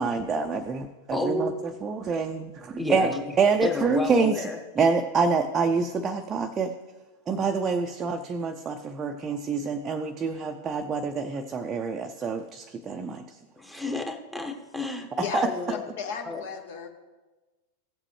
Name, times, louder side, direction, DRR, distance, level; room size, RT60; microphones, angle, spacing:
voice 1, 0.0-1.5 1.8-3.1 3.4-4.4 4.8-6.7 7.3-13.2 15.2-15.5, right 4 dB, 20° right, 4 dB, 0.6 m, -26 dB
voice 2, 1.1-1.6 2.8-4.9 13.6-15.1 15.3-15.8 16.2-16.4, left 2 dB, 5° left, 3 dB, 1.1 m, -31 dB
voice 3, 15.2-16.9, left 6 dB, 55° left, 5 dB, 1.3 m, -35 dB
16.0 x 7.4 x 3.2 m, 1.2 s
figure-of-eight pair, 90°, 0 cm